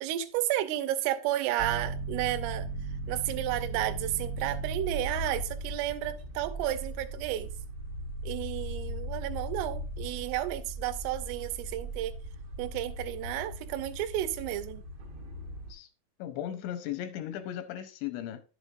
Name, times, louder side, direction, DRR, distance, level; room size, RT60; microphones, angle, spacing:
voice 1, 0.0-2.7 3.1-7.5 8.2-12.1 12.6-14.8, right 13 dB, 85° right, 3.4 m, -32 dB
sound 1, 1.6-15.7, right 2 dB, 65° right, 1.4 m, -38 dB
voice 2, 16.2-18.4, left 11 dB, 85° left, 2.9 m, -36 dB
10.5 x 8.2 x 2.5 m
omnidirectional pair, 5.7 m